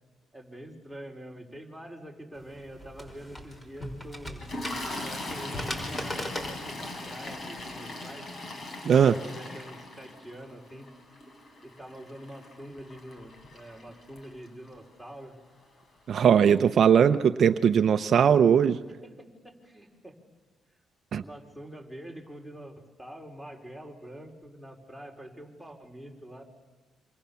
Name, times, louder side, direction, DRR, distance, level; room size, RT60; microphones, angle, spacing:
voice 1, 0.3-4.5 5.0-8.3 9.2-10.9 11.6-15.3 16.2-16.6 17.9-18.1 19.0-20.1 21.2-26.4, right 1 dB, 5° left, 3 dB, 4.7 m, -45 dB
sound 1, 2.4-7.7, left 1 dB, 20° left, 5.4 m, -40 dB
Toilet flush, 4.4-14.7 15.6-15.8 16.1-16.3, left 2 dB, 45° left, 4.8 m, -40 dB
voice 2, 8.8-9.2 16.1-18.8 21.1-21.2, right 8 dB, 55° right, 9 dB, 0.8 m, -20 dB
27.5 x 26.5 x 7.1 m, 1.2 s
cardioid pair, 90°, 0 cm